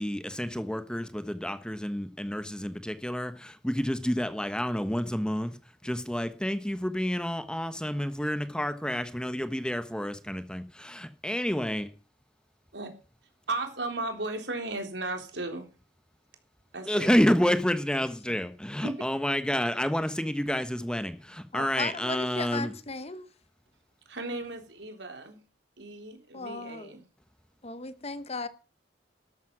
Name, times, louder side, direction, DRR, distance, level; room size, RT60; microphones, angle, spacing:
voice 1, 0.0-5.6 5.8-11.9 16.9-22.7, equal, 5° left, 1.2 m, -29 dB
voice 2, 13.5-15.7 16.7-17.1 18.8-19.1 24.1-25.4 25.8-27.0, right 2 dB, 80° right, 3.7 m, -35 dB
voice 3, 21.5-23.3 26.3-26.9 27.6-28.5, left 3 dB, 35° left, 1.2 m, -36 dB
12.5 x 12.5 x 6.1 m
head